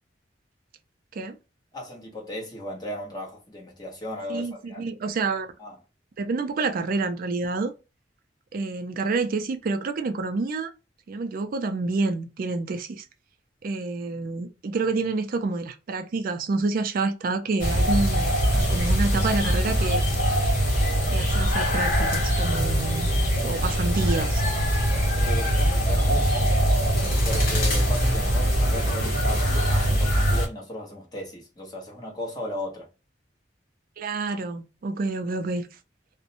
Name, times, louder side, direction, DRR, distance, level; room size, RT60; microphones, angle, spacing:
voice 1, 1.7-4.8 5.6-5.7 25.1-26.6 27.3-32.9, left 1 dB, 25° left, 1.0 m, -36 dB
voice 2, 4.3-5.5 6.2-7.7 8.5-10.7 11.1-13.0 13.6-20.0 21.1-23.1 23.4-24.4 26.1-26.3 34.0-35.7, right 3 dB, 50° right, 0.4 m, -28 dB
sound 1, 17.6-30.5, equal, 50° left, 1.0 m, -22 dB
2.5 x 2.1 x 2.7 m
head